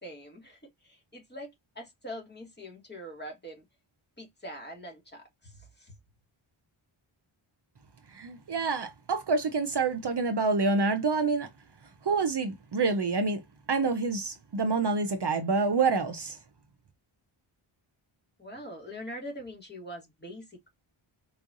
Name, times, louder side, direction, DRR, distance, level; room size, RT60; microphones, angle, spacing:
voice 1, 0.0-3.6 4.2-5.9 18.4-20.7, equal, 20° left, 2.2 m, -43 dB
voice 2, 8.1-11.5 12.0-13.4 13.7-16.4, right 4 dB, 55° right, 0.9 m, -27 dB
4.6 x 3.3 x 2.6 m
wide cardioid pair, 115°, 50 cm